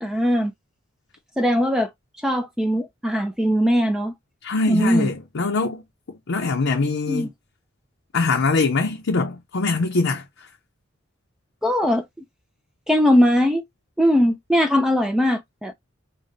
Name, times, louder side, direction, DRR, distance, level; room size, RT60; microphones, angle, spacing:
voice 1, 0.0-0.5 1.4-1.9 2.2-4.1 4.7-5.1 7.1-7.3 11.6-12.0 12.9-13.6 14.0-15.7, equal, 5° right, 0.3 m, -20 dB
voice 2, 4.4-5.8 6.1-7.3 8.1-10.2, left 3 dB, 65° left, 0.6 m, -23 dB
5.0 x 2.2 x 2.6 m
head